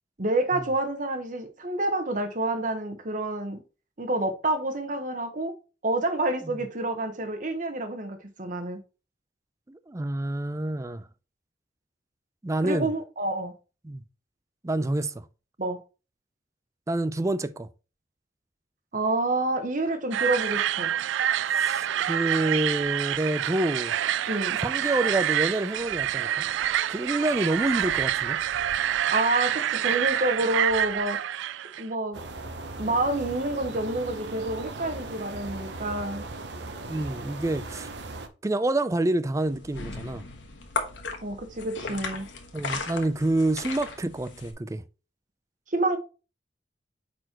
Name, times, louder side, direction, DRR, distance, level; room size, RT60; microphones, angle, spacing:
voice 1, 0.2-3.6 4.0-5.6 5.8-8.8 12.6-13.5 15.6-15.8 18.9-20.9 24.3-24.6 29.1-31.2 31.8-32.2 32.8-36.2 41.2-42.3 45.7-46.0, right 2 dB, 45° right, 1.1 m, -28 dB
voice 2, 9.7-11.0 12.4-12.9 13.8-14.0 14.6-15.3 16.9-17.7 21.5-23.9 24.6-26.4 26.9-28.4 36.9-37.9 38.4-40.3 42.5-44.8, right 2 dB, 15° right, 0.4 m, -27 dB
sound 1, 20.1-31.8, right 10 dB, 90° right, 0.3 m, -27 dB
sound 2, 32.1-38.3, right 2 dB, 70° right, 0.9 m, -38 dB
sound 3, 39.4-44.5, left 4 dB, 85° left, 1.3 m, -36 dB
8.9 x 4.3 x 2.9 m
head